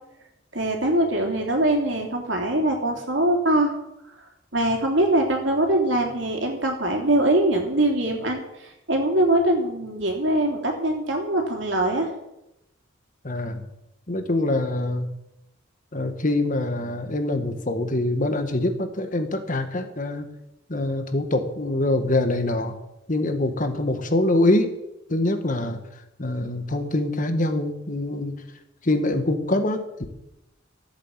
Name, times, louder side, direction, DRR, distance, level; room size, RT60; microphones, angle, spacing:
voice 1, 0.5-3.7 4.5-12.1, right 1 dB, 65° right, 2 dB, 3.2 m, -22 dB
voice 2, 13.2-13.6 14.1-15.1 15.9-20.2 20.7-22.7 23.1-24.7 25.1-25.8 26.2-28.4 28.8-29.8, left 2 dB, 40° left, 7 dB, 1.6 m, -24 dB
14.5 x 8.7 x 7.4 m, 0.88 s
head